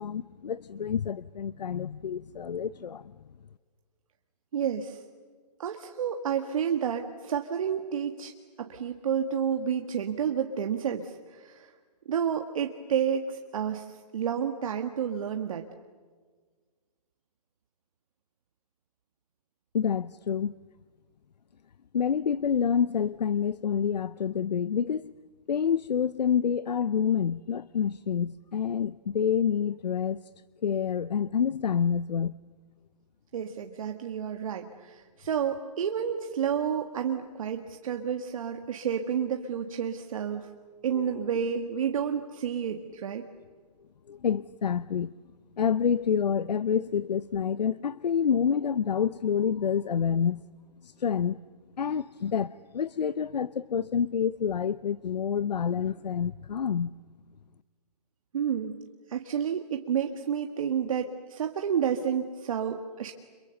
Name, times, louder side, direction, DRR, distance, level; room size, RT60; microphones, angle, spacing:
voice 1, 0.0-3.1 19.7-20.5 21.9-25.1 25.5-30.2 30.6-32.4 40.9-41.3 44.1-45.1 45.6-50.4 50.8-51.4 51.8-56.9, left 7 dB, 85° left, 0.7 m, -28 dB
voice 2, 4.5-5.0 5.6-8.3 8.6-11.7 12.1-13.8 14.1-15.6 33.3-40.5 40.8-43.2 58.3-58.8 59.1-63.1, right 8 dB, 55° right, 1.7 m, -30 dB
29.5 x 27.5 x 7.0 m
hypercardioid pair, 155°, 21 cm